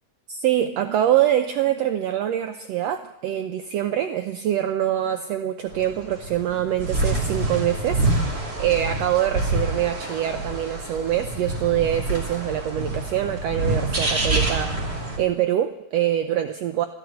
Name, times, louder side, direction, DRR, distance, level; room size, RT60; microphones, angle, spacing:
voice 1, 0.3-16.9, right 11 dB, 80° right, 7 dB, 1.5 m, -24 dB
sound 1, 5.7-15.2, right 2 dB, 30° right, 2.8 m, -26 dB
13.5 x 11.0 x 9.2 m, 0.93 s
omnidirectional pair, 3.6 m